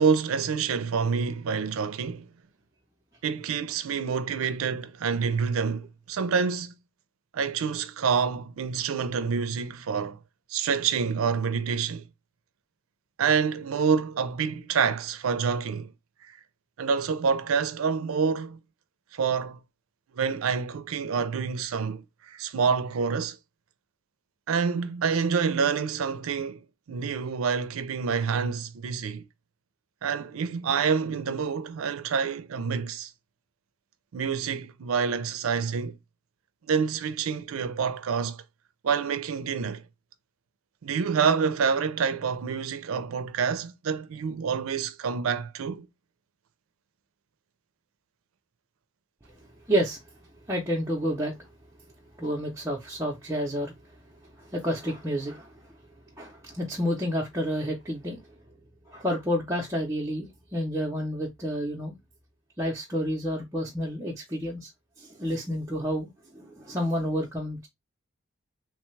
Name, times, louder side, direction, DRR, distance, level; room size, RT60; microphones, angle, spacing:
voice 1, 0.0-2.3 3.2-6.7 7.3-10.2 10.5-12.1 13.2-15.9 16.2-16.4 16.8-18.6 19.1-19.6 20.1-23.4 24.5-29.3 30.0-33.1 34.1-36.0 36.7-38.4 38.8-39.8 40.8-45.9, right 6 dB, 80° right, 0.4 m, -27 dB
voice 2, 49.7-50.0 50.5-51.5 52.2-53.9 54.2-55.7 56.2-58.2 58.9-61.9 62.6-64.7 65.0-67.7, equal, 15° right, 0.6 m, -30 dB
3.1 x 2.2 x 3.1 m
head